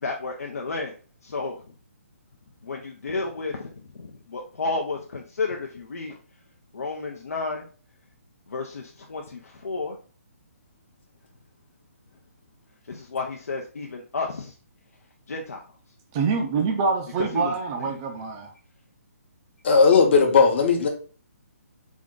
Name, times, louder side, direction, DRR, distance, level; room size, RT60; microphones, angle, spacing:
voice 1, 0.0-0.9 1.2-1.6 2.6-3.7 3.9-6.2 6.7-7.7 8.5-10.0 12.9-14.5 15.3-15.6 17.2-17.5, left 3 dB, 90° left, 0.6 m, -31 dB
voice 2, 16.1-18.5, right 5 dB, 20° right, 0.4 m, -25 dB
voice 3, 19.6-20.9, left 5 dB, 50° left, 0.9 m, -17 dB
3.5 x 2.5 x 3.6 m
hypercardioid pair, 160°, 8 cm